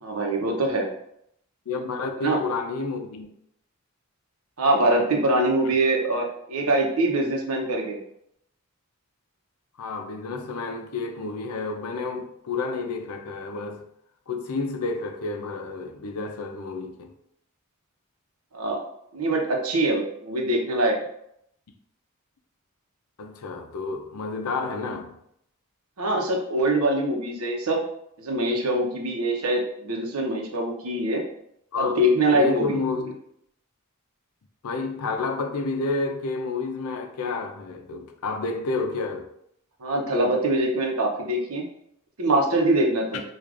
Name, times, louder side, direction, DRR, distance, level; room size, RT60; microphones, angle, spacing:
voice 1, 0.0-0.9 2.2-2.4 4.6-8.0 18.5-18.8 19.1-21.0 26.0-27.8 28.2-31.2 31.8-32.8 39.8-41.7 42.2-43.2, right 1 dB, 75° right, 0.8 m, -23 dB
voice 2, 1.7-3.3 5.6-5.7 9.8-13.8 14.3-17.1 23.2-25.1 31.7-33.1 34.6-39.3, left 3 dB, 85° left, 0.5 m, -30 dB
4.7 x 2.4 x 2.5 m
head